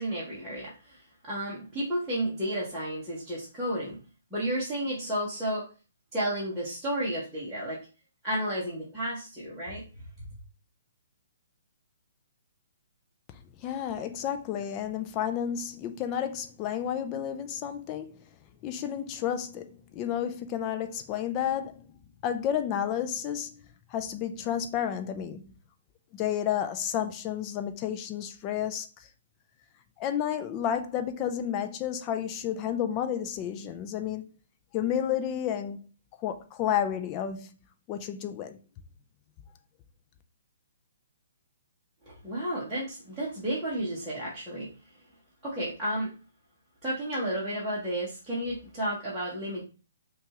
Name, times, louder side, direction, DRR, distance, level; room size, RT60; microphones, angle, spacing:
voice 1, 0.0-4.0 4.3-5.6 6.1-7.8 8.2-9.8 42.0-44.7 45.4-46.1 46.8-49.6, right 1 dB, 5° right, 0.9 m, -32 dB
voice 2, 13.6-18.2 18.6-21.9 22.2-23.5 23.9-25.5 26.1-28.9 30.0-34.3 34.7-35.8 36.2-37.5 37.9-38.6, left 9 dB, 20° left, 0.4 m, -31 dB
5.9 x 2.4 x 2.9 m
hypercardioid pair, 170°, 0 cm